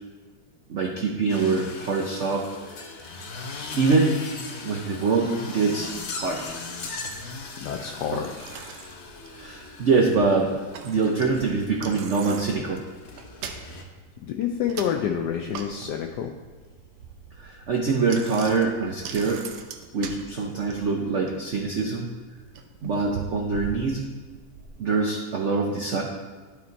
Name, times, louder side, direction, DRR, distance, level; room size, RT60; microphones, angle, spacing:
voice 1, 0.7-2.5 3.8-4.2 4.6-5.9 6.2-6.6 9.4-10.5 10.8-12.8 17.4-19.4 19.9-22.1 22.8-24.0 24.8-26.0, right 4 dB, 65° right, 0 dB, 0.7 m, -24 dB
sound 1, 1.3-13.8, left 4 dB, 55° left, 0.8 m, -39 dB
Bicycle, 5.8-24.7, right 6 dB, 85° right, 1.5 m, -42 dB
voice 2, 7.6-8.3 14.2-16.3, left 8 dB, 75° left, 3 dB, 1.0 m, -28 dB
11.5 x 4.3 x 4.0 m, 1.4 s
omnidirectional pair, 2.1 m